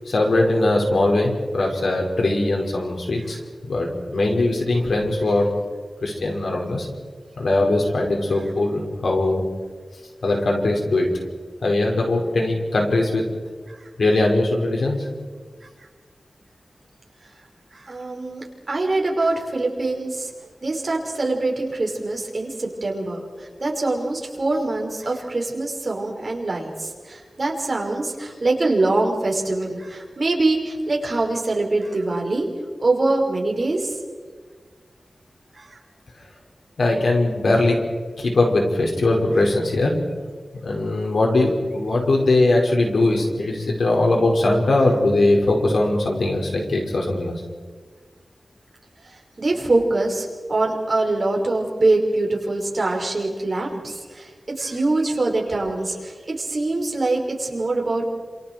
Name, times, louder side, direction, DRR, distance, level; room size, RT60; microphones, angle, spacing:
voice 1, 0.1-3.4 3.7-5.5 6.0-6.9 7.4-9.5 10.2-11.1 11.6-13.2 14.0-15.1 36.8-37.8 38.2-40.0 40.6-47.3, left 2 dB, 85° left, 0 dB, 5.5 m, -20 dB
voice 2, 17.7-20.3 20.6-32.5 32.8-33.9 35.6-35.8 49.4-54.3 54.6-58.1, right 2 dB, 50° right, 0 dB, 5.2 m, -24 dB
29.0 x 27.5 x 4.7 m, 1.5 s
wide cardioid pair, 100°, 0 cm